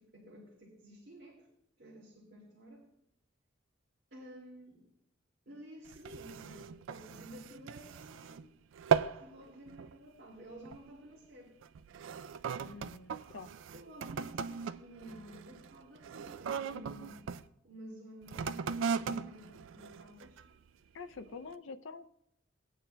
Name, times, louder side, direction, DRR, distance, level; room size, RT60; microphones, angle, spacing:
voice 1, 0.0-1.5 1.8-2.9 4.1-4.9 5.5-8.4 9.1-11.5 13.7-17.2 17.6-20.4 21.1-21.3, equal, 55° right, -5 dB, 2.3 m, -52 dB
sound 1, 5.9-8.5 8.7-9.3 9.7-10.0 10.7-10.9 11.6-17.4 18.2-20.6 21.2-21.3, right 6 dB, 75° right, 0.3 m, -37 dB
voice 2, 12.6-13.5 20.9-22.1, left 4 dB, 75° left, 10 dB, 0.5 m, -46 dB
18.5 x 9.0 x 2.2 m, 0.74 s
head